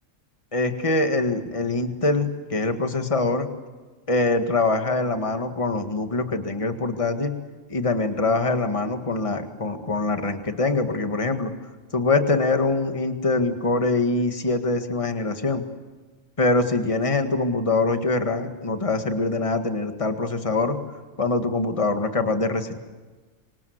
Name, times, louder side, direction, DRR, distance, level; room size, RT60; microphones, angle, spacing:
voice 1, 0.5-3.5 4.1-7.3 7.7-11.5 11.9-15.6 16.4-20.8 21.2-22.7, left 3 dB, 25° left, 6 dB, 1.9 m, -24 dB
26.5 x 25.5 x 8.1 m, 1.3 s
omnidirectional pair, 1.3 m